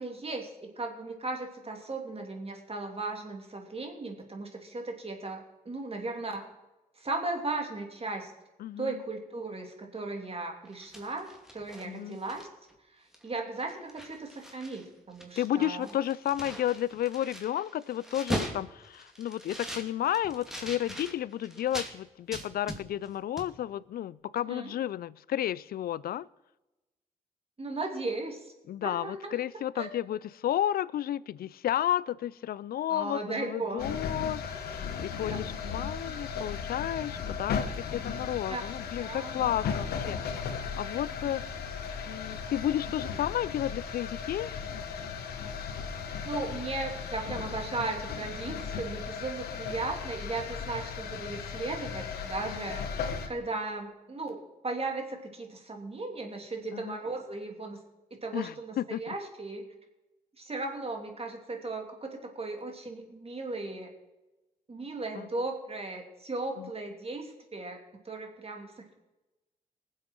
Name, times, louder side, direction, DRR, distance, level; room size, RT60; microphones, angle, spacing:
voice 1, 0.0-6.4 7.0-8.3 8.8-12.5 13.2-15.9 24.5-24.7 27.6-28.5 28.8-29.4 29.8-29.9 32.9-33.8 34.7-34.8 35.3-35.4 38.3-38.6 39.0-39.6 46.2-52.9 53.3-57.8 58.2-59.7 60.4-63.9 64.7-68.7, right 3 dB, 40° right, 2 dB, 3.0 m, -36 dB
voice 2, 8.6-9.0 11.8-12.2 15.4-26.3 28.7-41.7 42.0-44.5 52.5-52.7 56.7-57.0 58.3-59.1 65.1-65.3 66.6-66.7, left 11 dB, 75° left, 21 dB, 0.4 m, -32 dB
sound 1, 10.6-12.7 13.1-13.3 13.6-14.8 15.1-21.9 22.3-23.1 23.4-23.5, equal, 5° right, 2.5 m, -40 dB
sound 2, 33.8-53.3, left 6 dB, 90° left, 1.1 m, -36 dB
20.0 x 7.7 x 4.5 m, 1.0 s
supercardioid pair, 45°, 16 cm